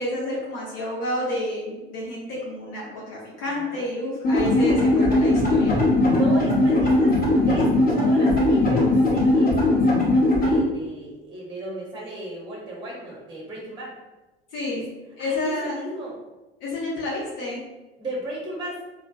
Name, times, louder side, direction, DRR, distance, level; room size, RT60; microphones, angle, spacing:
voice 1, 0.0-5.8 14.5-14.9 15.2-15.9 16.6-17.6, left 1 dB, 55° left, -6 dB, 0.8 m, -30 dB
voice 2, 3.5-3.8 6.1-7.2 7.4-13.9 14.7-14.8 15.2-16.2 18.0-18.8, right 1 dB, 15° right, -3 dB, 0.7 m, -35 dB
sound 1, 4.2-10.6, left 2 dB, 30° left, 1.0 m, -19 dB
3.1 x 2.0 x 2.4 m, 1.1 s
figure-of-eight pair, 70°, 31 cm